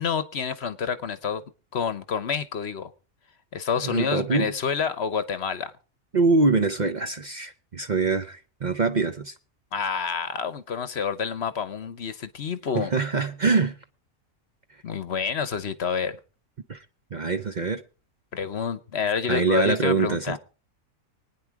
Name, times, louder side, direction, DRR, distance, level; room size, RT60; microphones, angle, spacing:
voice 1, 0.0-1.4 1.7-2.9 3.5-5.7 9.7-12.9 14.8-16.2 18.3-20.4, left 6 dB, 55° left, 1.1 m, -28 dB
voice 2, 3.8-4.5 6.1-9.3 12.7-13.8 16.7-16.8 17.1-17.8 19.3-20.4, right 4 dB, 40° right, 0.8 m, -24 dB
24.5 x 9.5 x 4.7 m
omnidirectional pair, 1.4 m